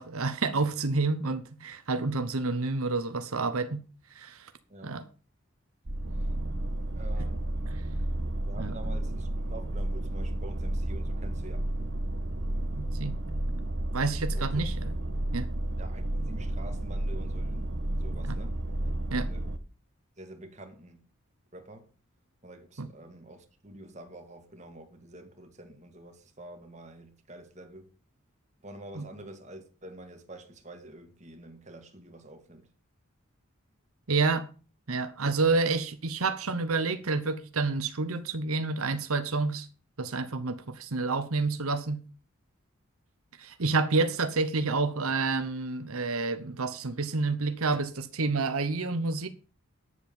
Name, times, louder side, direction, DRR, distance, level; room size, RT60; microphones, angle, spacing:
voice 1, 0.0-3.8 4.1-4.5 4.8-5.0 8.6-8.7 12.8-13.2 13.9-14.8 15.3-15.5 18.3-18.4 19.1-19.3 22.8-22.9 29.0-29.1 34.1-34.5 34.9-39.7 40.0-42.0 43.4-49.3, right 3 dB, 90° right, 1.0 m, -29 dB
voice 2, 4.7-5.0 6.2-6.3 6.9-7.5 8.4-11.7 14.3-14.6 15.8-18.9 19.2-19.5 20.2-21.0 21.5-21.9 22.4-27.9 28.6-32.7, right 1 dB, 35° right, 2.0 m, -47 dB
sound 1, 5.9-19.6, right 1 dB, 55° right, 1.2 m, -32 dB
10.0 x 7.3 x 7.0 m
head